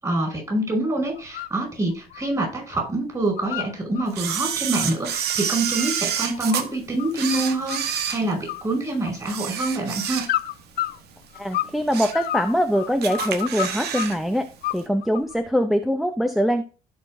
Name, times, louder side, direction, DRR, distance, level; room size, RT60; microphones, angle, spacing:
voice 1, 0.0-10.2, right 2 dB, 20° right, 1 dB, 5.6 m, -26 dB
sound 1, 1.1-1.6 1.9-2.9 3.1-4.1 4.5-7.3 7.7-8.1 8.5-9.4 10.2-11.8 12.1-14.2 14.6-15.4, left 14 dB, 65° left, 0.6 m, -31 dB
Camera, 4.2-6.7 7.1-8.8 9.2-10.6 11.0-11.1 11.6-12.3 12.6-12.7 13.0-14.2 14.4-14.5, right 8 dB, 75° right, 1.2 m, -28 dB
voice 2, 11.4-14.5 14.7-16.6, equal, ahead, 6 dB, 0.7 m, -23 dB
16.0 x 5.6 x 2.6 m, 0.33 s
cardioid pair, 110°, 17 cm